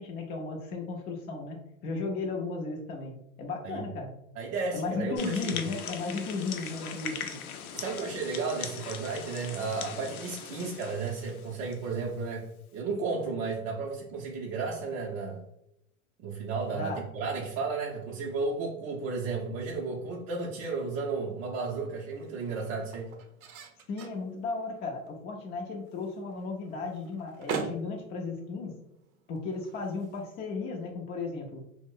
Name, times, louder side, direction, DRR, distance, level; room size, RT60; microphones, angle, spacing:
voice 1, 0.0-4.1 4.7-7.4 16.7-17.0 23.9-28.8 29.3-31.6, left 4 dB, 25° left, 0 dB, 0.4 m, -35 dB
voice 2, 4.4-5.6 7.7-12.5 12.7-15.4 16.2-23.1, right 4 dB, 35° right, -2 dB, 0.5 m, -33 dB
sound 1, 5.1-11.9, left 7 dB, 90° left, 0.5 m, -40 dB
sound 2, 20.6-30.9, right 5 dB, 85° right, 0.6 m, -44 dB
2.4 x 2.0 x 3.6 m, 0.79 s
hypercardioid pair, 105°, 42 cm